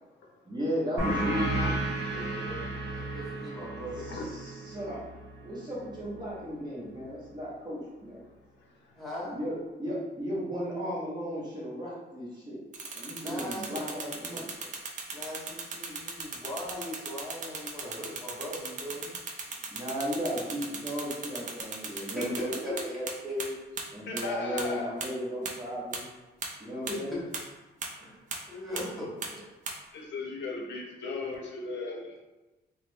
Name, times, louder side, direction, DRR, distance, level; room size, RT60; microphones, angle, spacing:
voice 1, 0.4-1.4 4.1-5.1 5.4-8.2 9.3-9.5 9.8-12.6 12.9-14.5 19.7-23.5 23.9-26.1 26.6-27.2, equal, 25° right, -7 dB, 0.9 m, -35 dB
sound 1, 1.0-6.2, right 2 dB, 70° right, 0.9 m, -33 dB
voice 2, 2.0-4.2 9.0-9.4 13.2-13.8 15.1-19.1 21.9-22.3 22.6-22.7 26.9-27.2 28.0-28.2 28.5-29.4, left 1 dB, ahead, -8 dB, 0.8 m, -40 dB
sound 2, 12.7-23.1 23.4-23.5 23.8-23.9 24.2-24.3 24.6-24.7 25.0-25.1 25.4-25.5 25.9-26.0 26.4-26.5 26.9-27.0 27.3-27.4 27.8-27.9 28.3-28.4 28.8-28.9 29.2-29.3 29.7-29.8, right 4 dB, 45° right, 0.4 m, -36 dB
voice 3, 24.1-24.9 29.9-32.2, left 3 dB, 80° left, 0 dB, 0.6 m, -36 dB
3.2 x 2.0 x 3.2 m, 1.1 s
wide cardioid pair, 175°, 18 cm